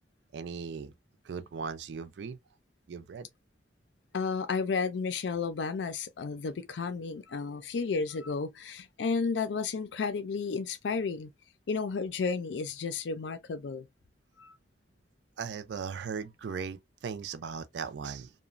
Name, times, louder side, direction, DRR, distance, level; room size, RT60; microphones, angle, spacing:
voice 1, 0.3-0.9 1.2-2.4 2.9-3.3 15.4-18.3, right 6 dB, 75° right, 0.4 m, -38 dB
voice 2, 4.1-11.3 11.7-13.9 14.4-14.6, left 5 dB, 85° left, 0.4 m, -32 dB
2.9 x 2.2 x 2.4 m
head